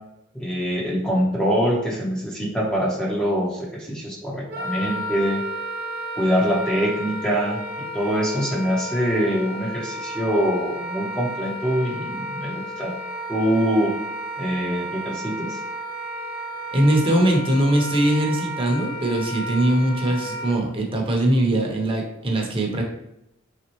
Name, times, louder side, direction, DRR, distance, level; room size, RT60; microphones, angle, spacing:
voice 1, 0.3-5.4 6.2-13.0 13.3-13.9 14.4-15.6, equal, 5° left, -4 dB, 0.6 m, -24 dB
Wind instrument woodwind instrument, 4.5-20.6, equal, 45° right, 1.0 m, -32 dB
voice 2, 16.7-22.8, right 1 dB, 25° right, 0 dB, 0.8 m, -21 dB
4.1 x 3.5 x 3.0 m, 0.84 s
head